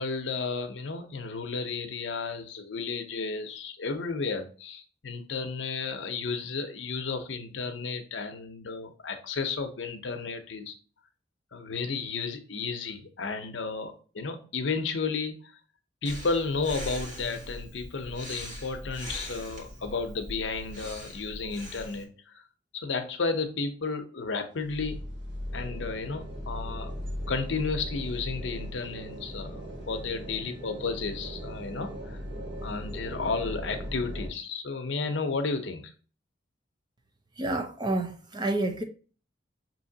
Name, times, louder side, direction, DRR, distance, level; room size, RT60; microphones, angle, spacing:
voice 1, 0.0-10.7 11.5-15.5 16.0-22.4 22.7-25.0 25.5-26.9 27.3-32.2 32.6-35.9, left 4 dB, 75° left, 0.7 m, -33 dB
Breathing, 16.0-22.0, equal, 45° right, 1.4 m, -41 dB
sound 1, 24.6-34.3, equal, 70° right, 1.1 m, -38 dB
voice 2, 37.4-38.8, right 2 dB, 25° right, 0.6 m, -29 dB
5.5 x 2.8 x 2.7 m
head